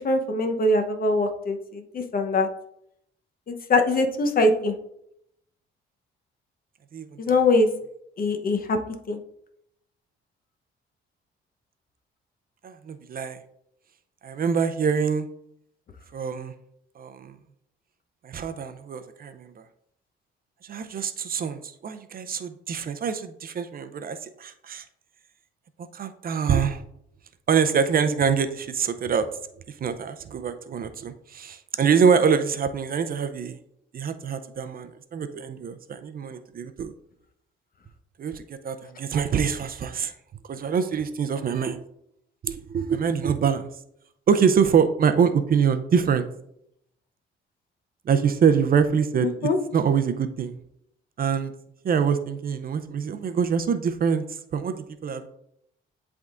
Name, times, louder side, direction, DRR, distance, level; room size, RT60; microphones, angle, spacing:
voice 1, 0.0-2.5 3.5-4.8 7.2-7.7 8.2-8.8 9.1-9.2 49.2-49.6, left 2 dB, 45° left, 5 dB, 0.9 m, -22 dB
voice 2, 12.6-13.4 14.2-15.3 16.1-16.5 17.0-17.3 18.2-19.6 20.6-24.8 25.9-26.8 27.5-29.3 29.8-33.6 33.9-36.9 38.2-40.1 40.5-41.8 42.4-43.7 44.3-46.3 48.1-50.6 51.2-51.5 51.8-54.2 54.5-55.3, right 6 dB, 45° right, 10 dB, 0.5 m, -25 dB
10.5 x 3.5 x 2.5 m, 0.75 s
cardioid pair, 85°, 20 cm